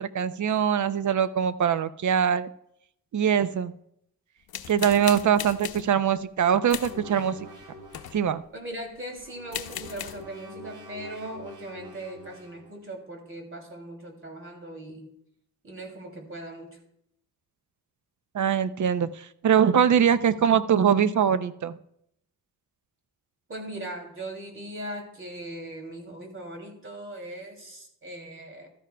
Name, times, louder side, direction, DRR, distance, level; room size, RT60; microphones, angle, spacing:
voice 1, 0.0-2.5 3.1-3.7 4.7-7.4 8.1-8.4 18.3-21.8, right 8 dB, 50° right, 13 dB, 0.6 m, -23 dB
sound 1, 4.5-5.9 6.7-7.0 7.9-8.3 9.2-9.3 9.5-10.3, left 10 dB, 70° left, 0.8 m, -37 dB
sound 2, 6.7-8.3 9.1-12.7, right 1 dB, 80° right, 5.6 m, -46 dB
voice 2, 8.5-15.1 15.6-16.8 23.5-28.7, right 1 dB, 35° right, 3 dB, 2.8 m, -39 dB
16.0 x 13.0 x 2.3 m, 0.74 s
cardioid pair, 105°, 37 cm